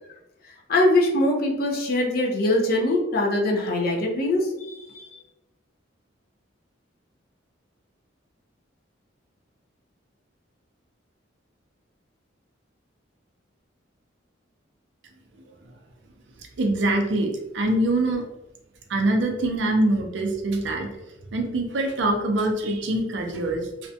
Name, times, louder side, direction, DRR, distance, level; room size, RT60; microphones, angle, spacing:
voice 1, 0.7-5.1, left 1 dB, 50° left, 0 dB, 0.5 m, -22 dB
voice 2, 16.6-18.2 18.9-20.9 21.3-23.7, right 1 dB, 65° right, 3 dB, 0.4 m, -24 dB
2.5 x 2.1 x 2.6 m, 0.96 s
head